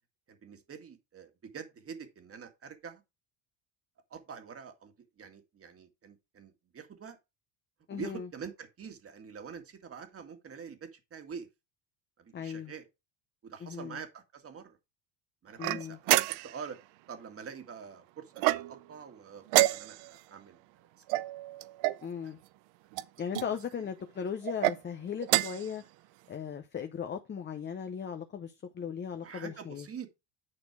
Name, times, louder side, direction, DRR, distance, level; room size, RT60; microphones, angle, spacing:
voice 1, 0.3-3.0 4.1-7.2 7.9-11.5 12.2-12.9 13.4-14.8 15.4-16.8 17.1-20.9 21.1-21.3 22.2-22.3 23.5-23.9 29.2-30.1, right 6 dB, 30° right, 1.8 m, -46 dB
voice 2, 7.9-8.3 12.3-12.7 13.6-14.0 15.6-16.0 22.0-22.4 23.2-25.8 26.3-29.9, left 7 dB, 25° left, 0.8 m, -37 dB
sound 1, 15.6-16.7 18.4-19.0 19.5-20.2 21.1-22.1 22.9-23.5 24.4-24.8 25.2-25.7, right 18 dB, 75° right, 0.7 m, -28 dB
9.8 x 4.3 x 4.6 m
cardioid pair, 125°, 46 cm